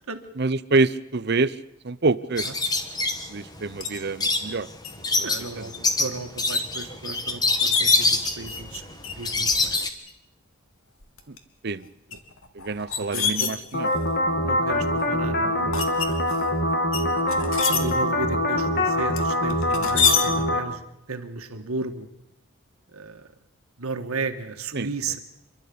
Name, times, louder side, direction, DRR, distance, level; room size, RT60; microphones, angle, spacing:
voice 1, 0.4-1.6 1.8-2.5 3.3-4.7 5.2-5.3 5.6-5.7 11.3-11.4 11.6-11.9 12.5-13.9 24.7-24.9, right 3 dB, 50° right, 15 dB, 0.7 m, -26 dB
sound 1, 2.4-9.9, left 3 dB, 20° left, 1.4 m, -25 dB
sound 2, 3.8-4.0 4.8-5.0 5.4-5.8 6.2-6.3 7.1-7.2 7.4-8.8 9.0-9.4 10.1-10.2 11.0-11.4 12.1-14.1 14.7-15.1 15.7-16.4 16.9-17.8 19.2-20.2, left 6 dB, 70° left, 2.0 m, -26 dB
voice 2, 5.2-9.8 13.0-13.5 14.4-16.2 16.9-20.8 21.1-22.1 22.9-23.3 23.8-25.2, right 3 dB, 85° right, 7 dB, 1.7 m, -34 dB
sound 3, 13.7-20.6, left 1 dB, 45° left, 2.1 m, -24 dB
28.0 x 12.0 x 8.6 m, 0.87 s
head